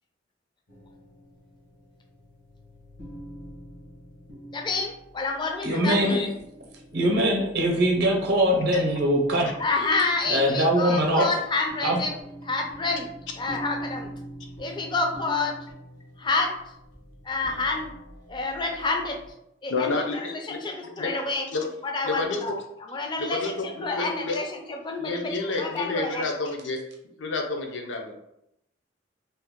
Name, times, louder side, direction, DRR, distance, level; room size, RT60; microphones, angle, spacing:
sound 1, 0.7-19.3, right 1 dB, 90° left, 1.1 m, -44 dB
voice 1, 4.5-6.4 6.9-7.2 9.6-12.1 12.4-13.1 13.4-14.1 14.6-15.5 16.2-16.5 17.2-17.9 18.3-19.2 19.6-21.5 21.8-22.5 22.9-26.3, left 3 dB, 25° left, 2 dB, 0.4 m, -28 dB
voice 2, 5.6-6.2 6.9-9.5 10.3-11.3 11.8-12.0, right 1 dB, 60° right, 0 dB, 0.6 m, -22 dB
voice 3, 19.7-21.1 21.5-21.7 22.0-22.4 23.2-24.4 25.0-26.8 27.2-28.2, left 3 dB, 70° left, 3 dB, 0.6 m, -30 dB
2.7 x 2.1 x 3.5 m, 0.80 s
head